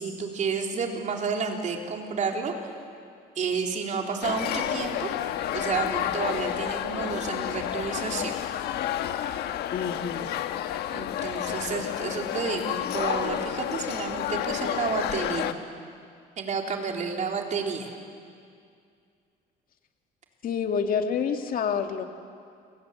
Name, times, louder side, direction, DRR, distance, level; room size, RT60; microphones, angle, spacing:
voice 1, 0.0-2.7 3.4-5.1 5.5-8.3 10.9-15.5 16.4-17.9, right 5 dB, 45° right, 2 dB, 3.8 m, -30 dB
sound 1, 4.2-15.5, left 11 dB, 75° left, 1.3 m, -30 dB
voice 2, 9.7-10.3 20.4-22.0, left 6 dB, 55° left, 5 dB, 2.2 m, -28 dB
29.0 x 24.5 x 8.2 m, 2.3 s
cardioid pair, 110°, 17 cm